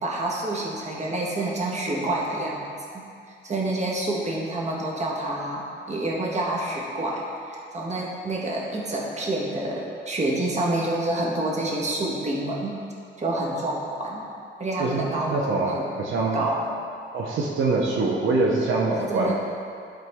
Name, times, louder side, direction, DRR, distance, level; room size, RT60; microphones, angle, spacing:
voice 1, 0.0-2.7 2.9-3.0 3.4-12.7 13.2-14.2 14.6-15.8 16.3-16.7 19.0-19.3, right 1 dB, 35° right, -3 dB, 1.4 m, -28 dB
voice 2, 14.8-16.4 17.1-19.3, right 3 dB, 75° right, -2 dB, 0.8 m, -24 dB
11.5 x 3.9 x 3.6 m, 2.5 s
cardioid pair, 105°, 20 cm